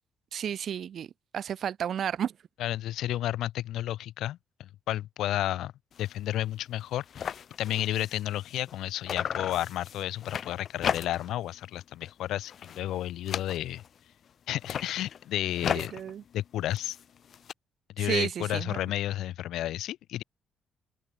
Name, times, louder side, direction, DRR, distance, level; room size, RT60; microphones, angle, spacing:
voice 1, 0.3-1.1 1.3-2.3 15.8-16.2 18.0-18.8, right 9 dB, 60° right, 2.4 m, -32 dB
voice 2, 2.6-5.7 6.0-13.8 14.5-15.9 16.3-17.0 18.0-20.2, left 13 dB, 80° left, 5.7 m, -32 dB
sound 1, 5.9-6.2 6.5-6.6 6.8-8.8 9.1-11.4 11.8-12.1 12.4-14.0 14.5-17.5, left 8 dB, 55° left, 6.9 m, -36 dB
open air
cardioid pair, 90°, 0 cm